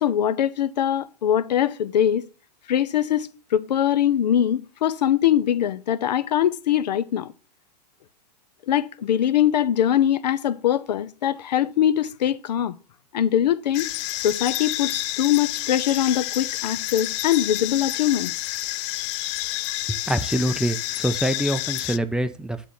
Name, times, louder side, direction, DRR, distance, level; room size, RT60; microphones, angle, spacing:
voice 1, 0.0-2.3 2.7-7.3 8.7-12.7 13.1-13.9 14.2-18.3, left 10 dB, 80° left, 0.8 m, -22 dB
sound 1, 13.7-22.0, left 18 dB, 45° left, 0.4 m, -29 dB
voice 2, 19.9-22.7, right 1 dB, 5° right, 0.7 m, -25 dB
9.7 x 4.0 x 7.2 m
hypercardioid pair, 120°, 21 cm